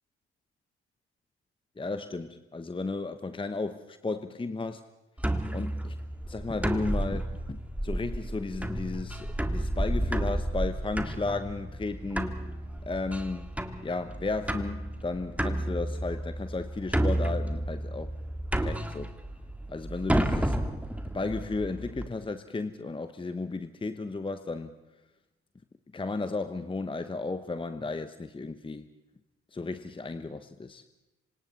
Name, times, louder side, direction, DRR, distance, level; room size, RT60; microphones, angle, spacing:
voice 1, 1.8-4.8 5.5-6.0 6.3-12.3 12.8-18.1 18.5-19.1 19.7-20.6 21.1-24.7 25.9-28.9 29.5-30.8, left 3 dB, 15° left, 11 dB, 1.0 m, -34 dB
sound 1, 5.2-22.1, right 1 dB, 5° right, 1.9 m, -31 dB
26.5 x 26.0 x 4.2 m, 1.0 s
hypercardioid pair, 50°, 33 cm